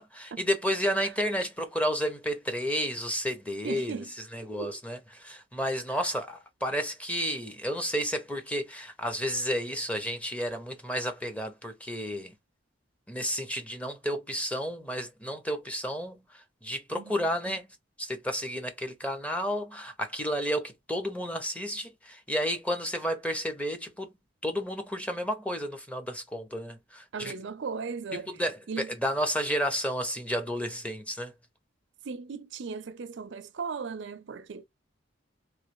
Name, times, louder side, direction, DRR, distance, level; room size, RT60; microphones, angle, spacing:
voice 1, 0.0-12.3 13.1-17.7 18.0-24.1 24.4-27.3 28.1-31.3, equal, 5° left, 0.7 m, -31 dB
voice 2, 3.6-4.1 4.6-4.8 5.9-6.0 17.0-17.1 27.1-28.3 28.7-28.9 32.0-34.6, right 5 dB, 70° right, 0.5 m, -37 dB
3.1 x 2.8 x 3.0 m
head